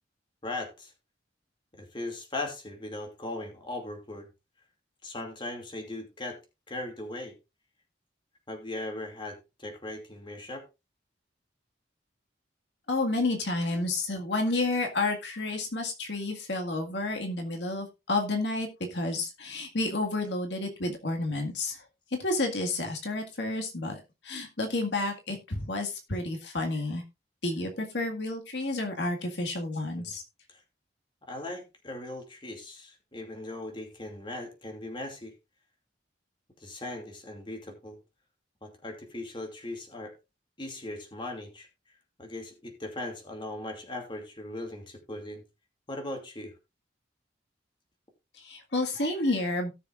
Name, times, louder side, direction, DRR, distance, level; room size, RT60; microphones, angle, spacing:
voice 1, 0.4-0.9 1.7-4.3 5.0-6.4 6.7-7.4 8.5-10.6 29.9-30.1 30.5-30.6 31.3-35.3 36.6-38.0 38.6-40.1 40.6-41.7 42.2-45.4 45.9-46.5, left 2 dB, 25° left, 2.5 m, -38 dB
voice 2, 12.9-21.8 22.2-27.0 27.4-30.2 48.3-49.7, left 2 dB, 70° left, 1.9 m, -30 dB
17.5 x 6.9 x 2.5 m
head